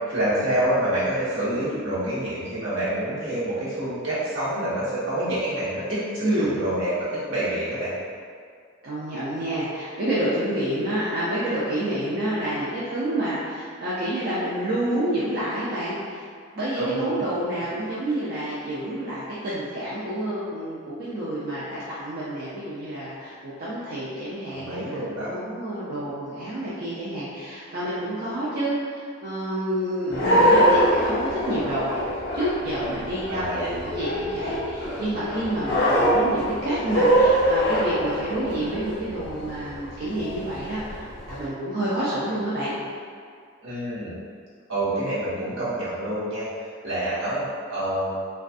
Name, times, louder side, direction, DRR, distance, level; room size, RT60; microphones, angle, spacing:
voice 1, 0.1-7.9 16.8-17.3 24.5-25.3 30.1-30.5 33.3-33.7 43.6-44.2 44.7-48.2, right 1 dB, 75° right, -12 dB, 1.1 m, -27 dB
voice 2, 6.2-6.6 8.8-16.2 16.5-31.9 32.3-33.4 33.8-42.7, right 1 dB, 50° right, -10 dB, 0.4 m, -29 dB
sound 1, 30.1-41.4, equal, 55° left, 0.4 m, -23 dB
2.5 x 2.3 x 2.4 m, 2.1 s
head